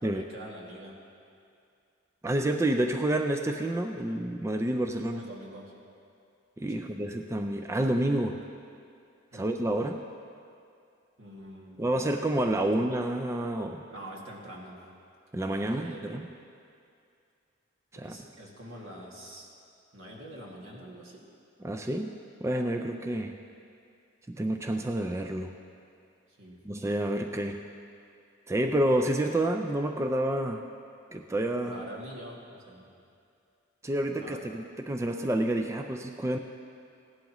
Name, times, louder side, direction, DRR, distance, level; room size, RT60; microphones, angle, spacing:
voice 1, 0.0-1.0 5.1-5.7 6.7-6.9 9.3-9.5 11.2-11.8 12.6-12.8 13.9-14.8 15.5-16.1 18.0-19.5 19.9-21.2 26.4-26.6 31.6-32.9 34.2-34.4, right 1 dB, 85° right, -3 dB, 2.1 m, -45 dB
voice 2, 2.2-5.2 6.6-8.4 9.3-10.0 11.8-13.8 15.3-16.3 17.9-18.2 21.6-22.1 22.4-23.4 24.3-25.5 26.7-27.6 28.5-30.7 31.1-31.8 33.8-36.4, right 1 dB, 15° right, 5 dB, 0.3 m, -29 dB
17.0 x 11.5 x 3.0 m, 2.4 s
head